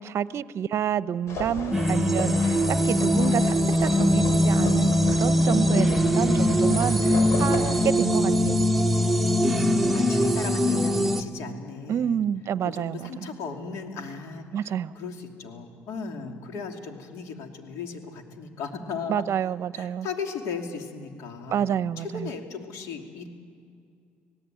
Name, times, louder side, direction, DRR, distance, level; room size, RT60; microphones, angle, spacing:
voice 1, 0.0-8.7 11.9-13.1 14.5-14.9 19.1-20.1 21.5-22.3, right 9 dB, 60° right, 16 dB, 0.7 m, -28 dB
sound 1, 1.3-7.9, left 3 dB, 65° left, 5.3 m, -35 dB
sound 2, 1.7-11.2, equal, 5° right, 1.5 m, -22 dB
voice 2, 9.9-12.3 12.6-19.3 19.7-23.3, left 5 dB, 80° left, 4 dB, 2.8 m, -37 dB
26.0 x 18.0 x 9.2 m, 2.3 s
supercardioid pair, 70°, 5 cm